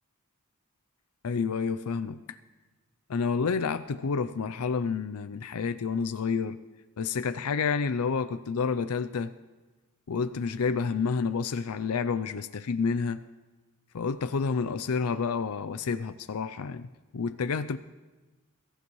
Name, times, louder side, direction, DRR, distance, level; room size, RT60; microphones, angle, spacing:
voice 1, 1.2-2.2 3.1-6.6 7.0-9.3 10.1-13.2 13.9-17.8, left 5 dB, 80° left, 11 dB, 0.5 m, -29 dB
23.0 x 15.0 x 3.1 m, 1.2 s
head